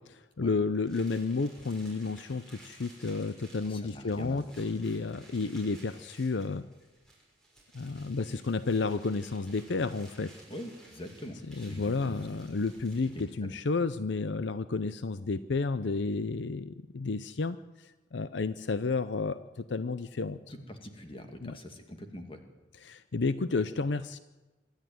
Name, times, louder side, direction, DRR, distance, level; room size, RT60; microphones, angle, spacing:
voice 1, 0.1-6.7 7.7-10.3 11.5-20.4 21.4-21.6 22.8-24.2, left 3 dB, 70° left, 13 dB, 0.6 m, -31 dB
sound 1, 0.8-13.4, right 1 dB, 5° left, 6.2 m, -56 dB
voice 2, 3.6-4.7 10.5-12.2 13.4-13.6 20.5-22.4, left 1 dB, 25° left, 5 dB, 2.3 m, -44 dB
26.0 x 11.5 x 9.4 m, 1.2 s
head